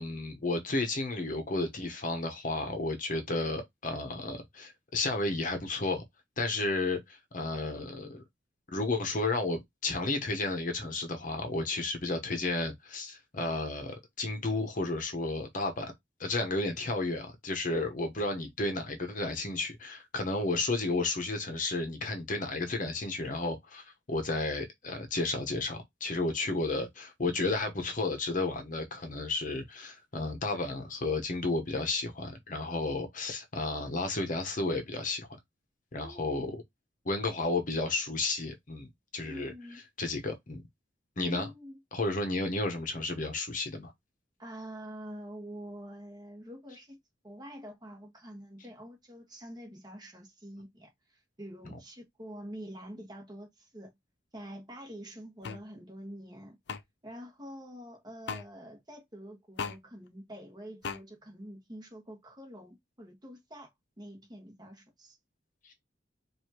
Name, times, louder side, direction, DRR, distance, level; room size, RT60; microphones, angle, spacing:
voice 1, 0.0-6.0 6.4-8.2 8.7-15.9 16.2-35.3 35.9-36.6 37.0-39.5 40.0-40.6 41.2-41.5 41.9-43.9 65.6-65.7, left 2 dB, 45° left, 1.0 m, -32 dB
voice 2, 36.0-36.5 39.3-39.8 41.2-41.8 44.4-47.0 47.2-53.9 54.3-56.6 57.0-63.7 64.0-65.2, equal, 25° right, 1.4 m, -46 dB
sound 1, 55.4-55.6 56.7-56.8 58.3-58.5 59.6-59.8 60.8-61.0, left 5 dB, 65° left, 0.5 m, -36 dB
4.8 x 2.7 x 2.8 m
head